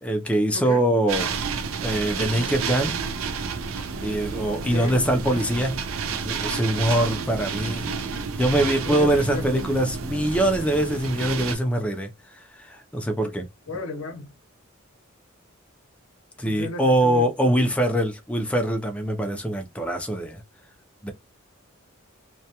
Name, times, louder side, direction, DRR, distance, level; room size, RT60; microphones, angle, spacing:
voice 1, 0.0-1.3 1.8-2.9 4.0-5.8 6.1-7.9 8.4-13.5 16.4-20.4 21.0-21.1, right 1 dB, 5° left, 0.4 m, -23 dB
voice 2, 0.5-0.8 2.1-2.8 4.5-5.0 5.3-5.6 7.8-8.0 8.8-9.6 13.7-14.3 16.4-17.3, left 2 dB, 85° left, 0.7 m, -35 dB
sound 1, 1.1-11.6, right 5 dB, 75° right, 0.4 m, -30 dB
2.2 x 2.2 x 2.7 m
head